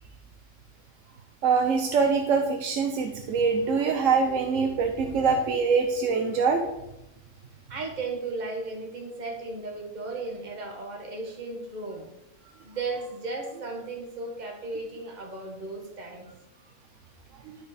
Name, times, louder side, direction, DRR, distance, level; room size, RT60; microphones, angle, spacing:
voice 1, 1.4-6.6 17.5-17.6, right 5 dB, 90° right, 4 dB, 1.2 m, -24 dB
voice 2, 7.7-12.1 12.6-16.3, right 3 dB, 35° right, 1 dB, 1.6 m, -35 dB
12.0 x 5.1 x 5.0 m, 0.90 s
omnidirectional pair, 1.3 m